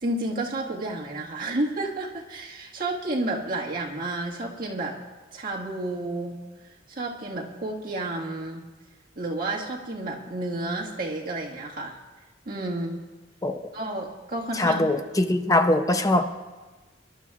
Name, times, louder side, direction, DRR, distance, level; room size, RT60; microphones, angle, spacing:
voice 1, 0.0-5.0 5.3-6.4 6.9-8.6 9.2-12.0 12.4-13.0 13.7-14.8, right 2 dB, 50° right, -2 dB, 1.7 m, -31 dB
voice 2, 14.5-16.2, left 1 dB, 20° left, 7 dB, 0.6 m, -22 dB
25.5 x 11.5 x 2.4 m, 1.2 s
head